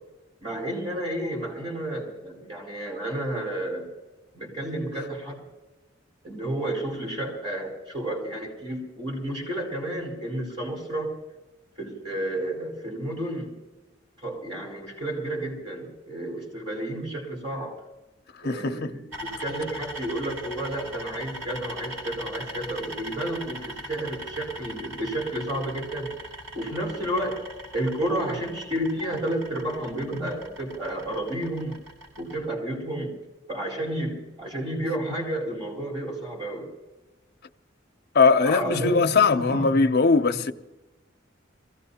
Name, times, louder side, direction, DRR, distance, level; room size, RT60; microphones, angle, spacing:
voice 1, 0.4-3.9 4.3-5.4 6.2-11.1 11.8-13.6 14.2-17.8 18.4-26.1 26.5-27.4 27.7-31.8 32.2-33.2 33.5-36.7 38.4-39.8, right 1 dB, 25° right, 4.8 m, -31 dB
voice 2, 18.4-18.9 38.1-40.5, left 4 dB, 55° left, 0.6 m, -20 dB
sound 1, 19.1-32.4, equal, 70° right, 5.5 m, -40 dB
24.0 x 16.5 x 2.8 m
head